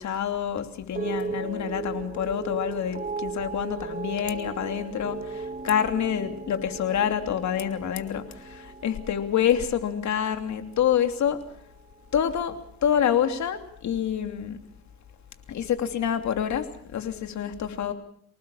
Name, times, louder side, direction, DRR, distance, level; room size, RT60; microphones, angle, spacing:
voice 1, 0.0-11.4 12.1-14.6 15.5-17.9, left 9 dB, 70° left, 7 dB, 3.0 m, -27 dB
sound 1, 0.9-11.3 11.6-12.2, right 4 dB, 30° right, 2.5 m, -37 dB
25.5 x 19.0 x 7.3 m, 0.63 s
cardioid pair, 90°, 30 cm